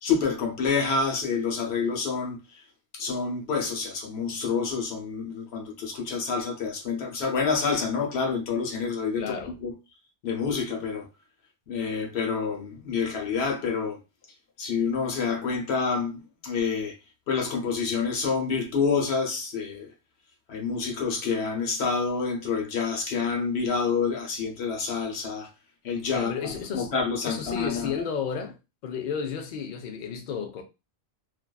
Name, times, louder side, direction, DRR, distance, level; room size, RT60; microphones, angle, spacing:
voice 1, 0.0-2.4 2.9-9.7 10.2-11.1 11.7-14.0 14.6-17.0 17.3-19.9 20.5-25.5 25.8-27.9, left 5 dB, 80° left, 1.0 m, -28 dB
voice 2, 9.2-9.5 26.1-26.9 27.2-28.6 28.8-30.6, left 6 dB, 55° left, 0.6 m, -32 dB
2.5 x 2.2 x 2.2 m
omnidirectional pair, 1.1 m